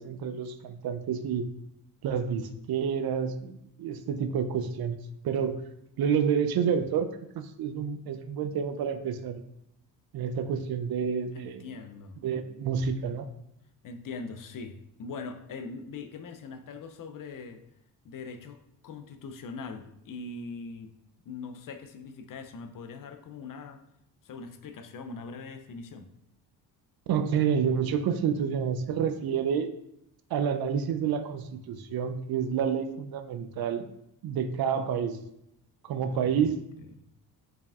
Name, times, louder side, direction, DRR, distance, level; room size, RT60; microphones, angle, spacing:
voice 1, 0.0-1.5 2.0-5.0 5.2-5.6 6.0-9.4 10.1-11.7 12.2-13.3 27.1-29.7 30.3-33.9 34.2-35.2 35.8-36.6, right 7 dB, 50° right, 9 dB, 0.5 m, -29 dB
voice 2, 11.3-12.2 13.8-17.6 18.0-18.6 18.8-20.9 21.2-23.8 24.2-26.1 35.9-36.5, left 4 dB, 45° left, 8 dB, 0.5 m, -41 dB
4.7 x 3.4 x 2.4 m, 0.78 s
supercardioid pair, 55°, 48 cm